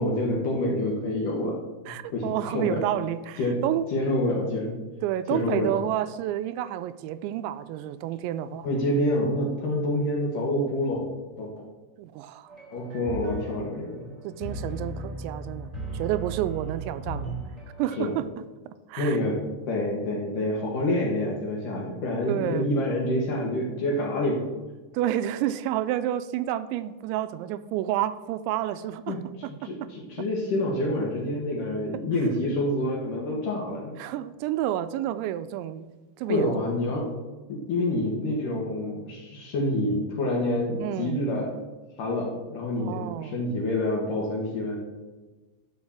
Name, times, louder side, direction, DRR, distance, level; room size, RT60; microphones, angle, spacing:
voice 1, 0.0-2.8 3.4-3.6 3.9-4.8 5.3-5.7 8.6-11.1 11.4-11.6 12.7-14.1 18.0-18.1 19.0-19.4 19.7-24.5 29.1-29.2 29.6-34.0 36.3-37.1 37.5-41.6 42.0-44.8, left 1 dB, 60° left, -1 dB, 2.5 m, -27 dB
voice 2, 1.9-3.8 5.0-8.7 12.0-12.5 14.2-17.3 17.8-18.3 18.9-19.2 22.3-22.7 24.9-29.7 33.9-35.9 36.2-36.5 40.8-41.2 42.8-43.4, right 12 dB, 85° right, 12 dB, 2.8 m, -30 dB
sound 1, 12.5-18.1, right 2 dB, 15° right, 3.9 m, -36 dB
13.0 x 5.5 x 7.3 m, 1.2 s
omnidirectional pair, 5.2 m